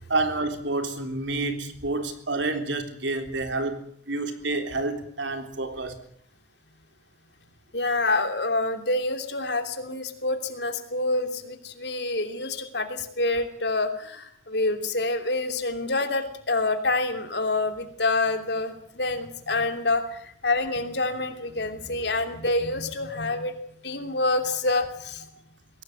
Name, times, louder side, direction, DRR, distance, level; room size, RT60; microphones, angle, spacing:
voice 1, 0.1-6.0 22.2-22.3, right 2 dB, 80° right, 3.6 m, -29 dB
voice 2, 7.7-23.6 23.8-25.2, left 2 dB, 65° left, 3.0 m, -27 dB
22.5 x 17.5 x 9.1 m
head